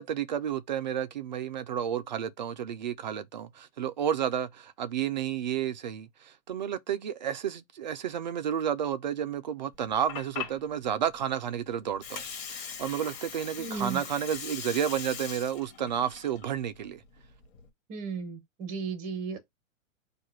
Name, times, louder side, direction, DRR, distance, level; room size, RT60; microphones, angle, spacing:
voice 1, 0.0-12.2 12.5-17.0, right 9 dB, 35° right, 0.4 m, -31 dB
Water, 9.7-17.7, left 7 dB, 35° left, 1.8 m, -41 dB
voice 2, 13.6-14.0 17.9-19.4, right 5 dB, 20° right, 1.1 m, -35 dB
4.5 x 2.4 x 4.7 m
hypercardioid pair, 155°, 41 cm